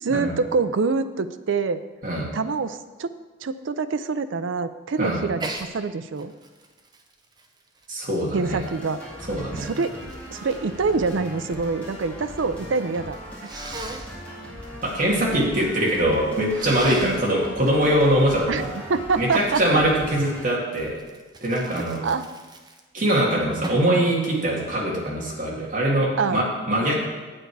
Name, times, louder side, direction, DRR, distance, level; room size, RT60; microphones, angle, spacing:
voice 1, 0.0-1.8 2.3-3.1 3.4-6.3 8.3-9.0 9.5-13.2 17.0-17.2 18.5-18.6 18.9-19.6 22.0-22.3 26.2-26.4, right 4 dB, 70° right, 11 dB, 0.5 m, -25 dB
Sneeze, 5.4-5.7 6.2-8.5 9.2-11.7 11.9-12.6 13.4-14.1 16.5-17.2 20.8-23.0 23.6-24.0, right 2 dB, 20° right, 0.7 m, -37 dB
voice 2, 7.9-8.6 9.3-9.7 14.8-18.7 19.2-21.0 21.4-22.1 22.9-26.9, right 1 dB, 40° right, -4 dB, 2.2 m, -22 dB
sound 1, 8.4-20.4, equal, 5° left, 2.3 m, -39 dB
8.8 x 8.0 x 4.7 m, 1.3 s
head